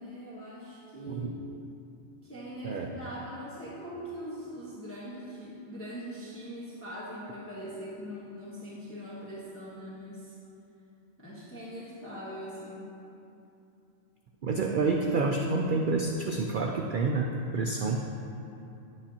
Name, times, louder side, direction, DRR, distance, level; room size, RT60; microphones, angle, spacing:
voice 1, 0.0-1.4 2.2-10.4 11.2-13.0, equal, 10° left, -9 dB, 1.2 m, -41 dB
voice 2, 14.4-18.0, right 3 dB, 60° right, 1 dB, 0.5 m, -28 dB
10.0 x 8.3 x 2.9 m, 2.7 s
omnidirectional pair, 1.4 m